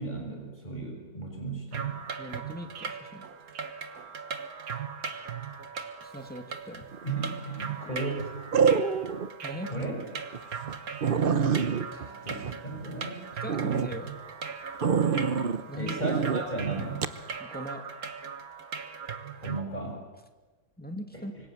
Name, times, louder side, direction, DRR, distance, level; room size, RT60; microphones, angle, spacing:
voice 1, 0.0-2.0 7.0-8.3 9.7-9.9 11.9-13.2 15.7-17.0 19.4-20.1, right 2 dB, 30° left, 1 dB, 5.6 m, -35 dB
sound 1, 1.7-19.6, right 6 dB, 70° right, 1.8 m, -38 dB
voice 2, 2.2-3.3 6.0-6.9 9.4-9.7 13.4-14.1 15.7-16.0 17.4-17.9 20.8-21.3, equal, 5° left, 5 dB, 2.2 m, -40 dB
sound 2, 6.9-7.3 8.5-9.3 9.7-9.9 10.3-10.4 10.7-10.8 11.0-13.1 13.5-13.9 14.8-15.6 16.0-16.4 17.0-17.2, right 6 dB, 40° right, 0.9 m, -26 dB
26.0 x 24.5 x 7.6 m, 1.3 s
omnidirectional pair, 1.6 m